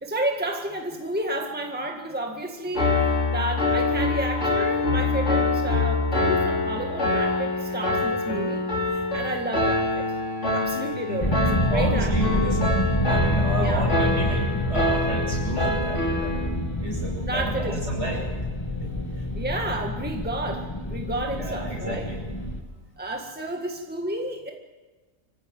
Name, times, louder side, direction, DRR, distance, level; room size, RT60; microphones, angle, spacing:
voice 1, 0.0-3.0 3.3-8.6 8.9-10.1 10.5-12.1 13.6-13.9 17.3-17.8 19.3-22.1 23.0-24.5, right 1 dB, 5° right, 2 dB, 1.8 m, -31 dB
Piano, 2.7-16.5, left 2 dB, 60° left, 4.8 m, -25 dB
voice 2, 10.9-12.8 13.0-16.4 16.8-18.2 18.8-18.9 21.3-22.2, right 1 dB, 60° right, -1 dB, 7.5 m, -32 dB
sound 1, 11.2-22.6, left 1 dB, 20° left, 1.8 m, -27 dB
25.5 x 15.5 x 8.9 m, 1.3 s
omnidirectional pair, 1.4 m